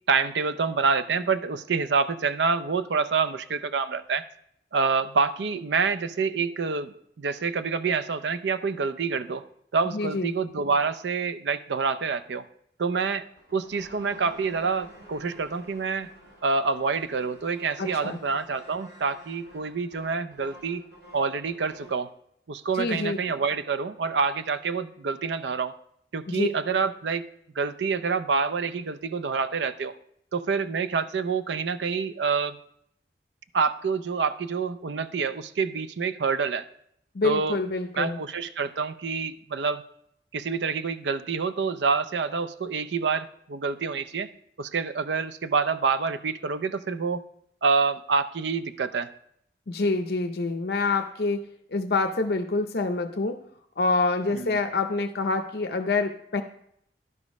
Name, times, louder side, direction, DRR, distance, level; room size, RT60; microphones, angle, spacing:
voice 1, 0.1-4.2 4.7-9.4 9.7-12.4 12.8-13.2 13.5-16.1 16.4-20.8 21.1-22.1 22.5-25.7 26.1-27.3 27.6-29.9 30.3-32.6 33.5-36.7 37.2-37.6 38.0-39.8 40.3-44.3 44.6-47.2 47.6-49.1 54.4-54.6, right 5 dB, 80° right, 13 dB, 0.5 m, -27 dB
voice 2, 9.9-10.3 17.8-18.2 22.8-23.2 26.3-26.5 37.1-38.2 49.7-51.4 51.7-53.4 53.8-56.4, left 3 dB, 60° left, 6 dB, 0.6 m, -26 dB
sound 1, 13.2-22.0, right 1 dB, 65° right, 4.0 m, -50 dB
11.0 x 5.0 x 5.3 m, 0.71 s
head